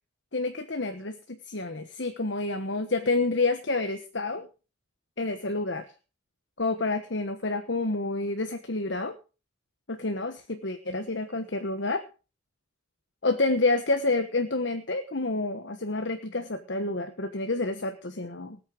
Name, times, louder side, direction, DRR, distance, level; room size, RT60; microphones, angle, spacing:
voice 1, 0.3-4.5 5.2-5.9 6.6-9.2 9.9-12.0 13.2-18.6, left 2 dB, 60° left, 8 dB, 1.3 m, -29 dB
18.5 x 9.2 x 5.1 m, 0.34 s
head